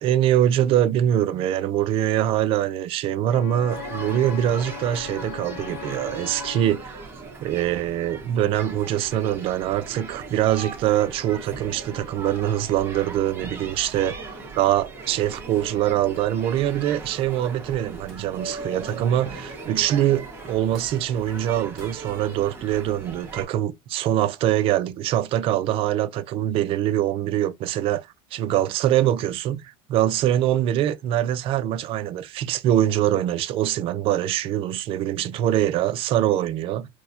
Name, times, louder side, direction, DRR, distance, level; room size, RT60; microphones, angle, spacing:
voice 1, 0.0-7.0 7.4-14.1 14.6-36.9, right 11 dB, 45° right, 0.5 m, -23 dB
Wind instrument woodwind instrument, 3.3-6.8, left 12 dB, 65° left, 0.4 m, -38 dB
sound 1, 3.7-23.4, right 3 dB, 15° right, 1.2 m, -39 dB
Tools, 18.1-18.4 18.9-19.2 19.8-20.2 20.7-21.3 21.8-22.3, left 1 dB, 5° left, 1.9 m, -50 dB
4.4 x 2.2 x 2.7 m
supercardioid pair, 135°, 13 cm